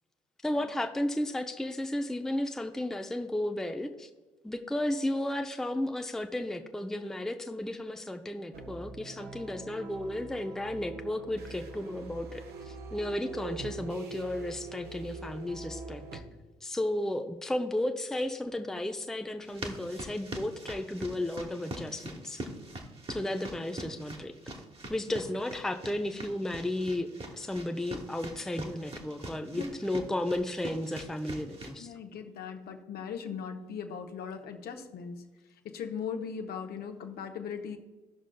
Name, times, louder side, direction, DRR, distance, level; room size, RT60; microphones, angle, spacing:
voice 1, 0.4-4.1 4.4-16.2 16.6-22.4 23.1-24.3 24.9-31.9, left 1 dB, ahead, 5 dB, 0.6 m, -34 dB
sound 1, 8.5-16.2, right 4 dB, 60° right, 0.9 m, -43 dB
sound 2, 19.4-31.7, right 1 dB, 30° right, 1.3 m, -43 dB
voice 2, 31.8-35.2 35.6-37.8, left 6 dB, 55° left, 5 dB, 0.9 m, -39 dB
16.5 x 6.1 x 2.3 m, 1.2 s
figure-of-eight pair, 45°, 19 cm